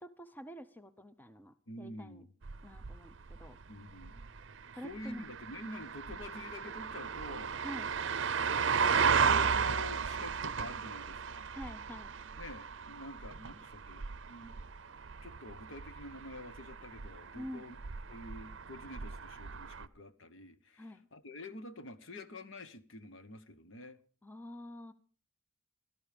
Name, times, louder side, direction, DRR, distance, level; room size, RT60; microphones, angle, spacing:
voice 1, 0.0-2.3 2.6-3.6 4.8-5.2 7.6-7.9 11.5-12.1 17.3-17.7 20.8-21.1 24.2-24.9, equal, 10° left, 0.7 m, -47 dB
voice 2, 1.7-2.3 3.7-4.2 4.8-7.6 8.3-11.5 12.4-14.6 15.2-17.8 18.1-24.0, left 2 dB, 65° left, 1.1 m, -48 dB
sound 1, 2.4-19.9, right 6 dB, 60° right, 0.6 m, -35 dB
16.0 x 13.5 x 5.2 m
head